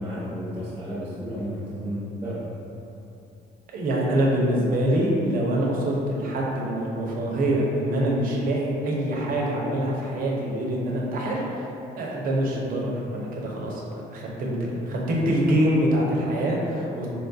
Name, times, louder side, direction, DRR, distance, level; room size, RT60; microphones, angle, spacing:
voice 1, 0.0-2.5, equal, 15° right, -10 dB, 1.0 m, -32 dB
voice 2, 3.7-11.7 12.0-13.8 14.1-17.1, right 1 dB, 55° right, -3 dB, 0.7 m, -25 dB
4.2 x 2.3 x 2.6 m, 2.7 s
cardioid pair, 110°, 17 cm